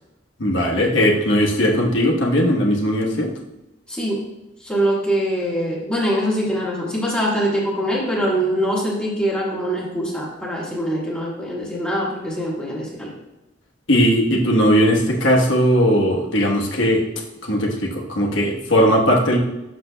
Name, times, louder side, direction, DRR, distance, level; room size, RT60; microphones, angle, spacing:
voice 1, 0.4-3.3 13.9-17.0 17.4-19.4, equal, 80° left, -1 dB, 1.1 m, -18 dB
voice 2, 3.9-4.2 4.6-13.1, equal, 5° left, -5 dB, 1.4 m, -23 dB
8.0 x 6.5 x 2.2 m, 0.92 s
head